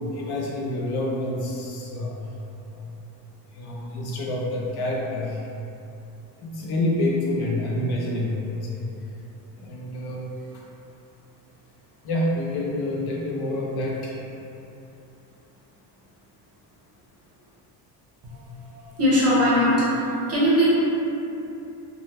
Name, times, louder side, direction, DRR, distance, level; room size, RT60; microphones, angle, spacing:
voice 1, 0.0-2.2 2.7-2.9 3.5-5.5 6.4-8.8 9.6-10.6 12.0-14.2, left 1 dB, 60° left, -3 dB, 0.6 m, -28 dB
voice 2, 18.2-20.7, equal, 35° right, -8 dB, 0.9 m, -21 dB
3.7 x 2.1 x 2.9 m, 2.9 s
cardioid pair, 140°, 44 cm